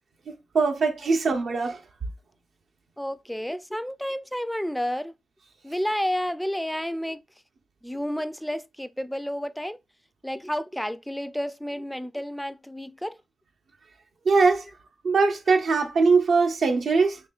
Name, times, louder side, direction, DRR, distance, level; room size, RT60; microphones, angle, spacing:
voice 1, 0.3-1.8 14.3-14.6 15.0-17.2, right 4 dB, 75° right, 0.7 m, -21 dB
voice 2, 3.0-5.1 5.6-7.2 7.8-9.8 10.2-13.2, equal, 5° left, 0.3 m, -30 dB
4.2 x 3.0 x 2.4 m
cardioid pair, 70°, 0 cm